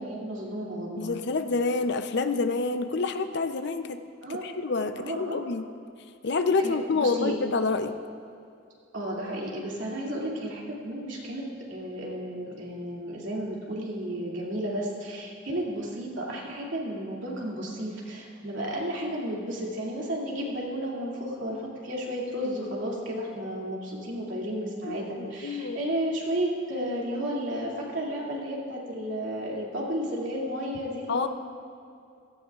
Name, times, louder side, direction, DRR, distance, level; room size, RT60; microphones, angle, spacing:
voice 1, 0.0-1.2 4.2-4.5 5.0-5.4 6.6-7.3 8.9-31.3, equal, 75° right, -4 dB, 2.5 m, -33 dB
voice 2, 1.0-4.0 4.4-5.6 6.2-7.9 24.9-25.8 31.1-31.3, left 4 dB, 60° left, 9 dB, 0.6 m, -27 dB
17.0 x 13.5 x 2.4 m, 2.5 s
head